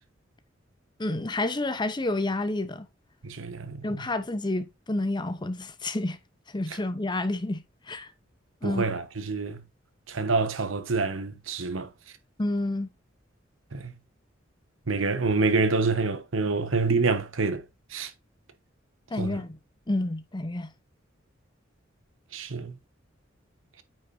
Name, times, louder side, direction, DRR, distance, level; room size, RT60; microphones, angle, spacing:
voice 1, 1.0-2.9 3.8-6.2 6.5-8.1 8.6-8.8 12.4-12.9 19.1-19.6 19.9-20.7, left 2 dB, 20° left, 0.7 m, -29 dB
voice 2, 3.2-3.9 8.6-9.6 10.1-11.9 13.7-13.9 14.9-17.6 17.9-18.1 19.2-19.4 22.3-22.8, right 4 dB, 85° right, 1.1 m, -27 dB
8.9 x 5.9 x 2.6 m
head